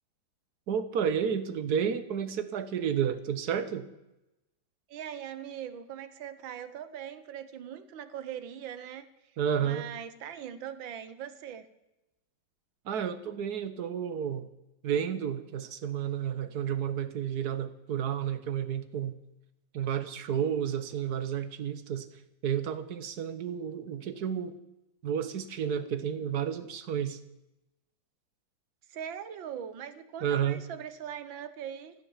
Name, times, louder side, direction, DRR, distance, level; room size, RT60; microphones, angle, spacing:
voice 1, 0.7-3.9 9.4-9.9 12.8-14.5 14.8-19.2 19.7-22.1 22.4-24.6 25.0-27.2 30.2-30.6, right 8 dB, 60° right, 11 dB, 1.5 m, -31 dB
voice 2, 4.9-9.1 9.6-11.7 28.9-32.0, right 9 dB, 90° right, 12 dB, 1.8 m, -41 dB
15.0 x 12.5 x 7.3 m, 0.92 s
omnidirectional pair, 2.0 m